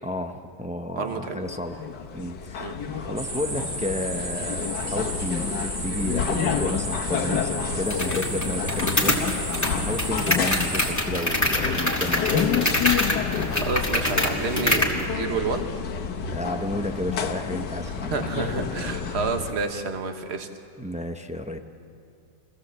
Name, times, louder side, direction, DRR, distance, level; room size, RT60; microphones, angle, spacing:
voice 1, 0.0-1.8 2.1-12.5 16.3-18.5 20.8-21.6, left 1 dB, 10° right, 5 dB, 0.3 m, -32 dB
voice 2, 1.0-1.4 2.6-2.8 13.5-15.7 18.1-20.5, right 4 dB, 40° right, 6 dB, 1.5 m, -29 dB
sound 1, 1.4-19.5, left 6 dB, 75° left, 1.7 m, -29 dB
sound 2, 3.2-10.9, right 2 dB, 85° right, 4.5 m, -33 dB
sound 3, 7.9-15.0, left 1 dB, 10° left, 2.3 m, -26 dB
25.5 x 16.5 x 7.6 m, 2.5 s
omnidirectional pair, 1.9 m